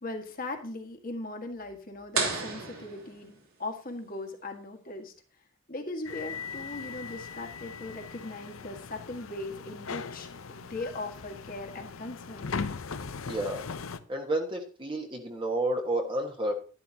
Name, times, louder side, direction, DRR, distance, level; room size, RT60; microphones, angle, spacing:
voice 1, 0.0-5.1 5.7-12.5, left 2 dB, 40° left, 4 dB, 1.6 m, -39 dB
sound 1, 2.1-3.8, right 4 dB, 85° right, 3.3 m, -33 dB
sound 2, 6.0-14.0, left 5 dB, 80° left, 0.7 m, -39 dB
voice 2, 13.3-13.6 14.1-16.5, right 1 dB, 25° right, 2 dB, 1.4 m, -30 dB
11.5 x 11.5 x 2.8 m, 0.38 s
head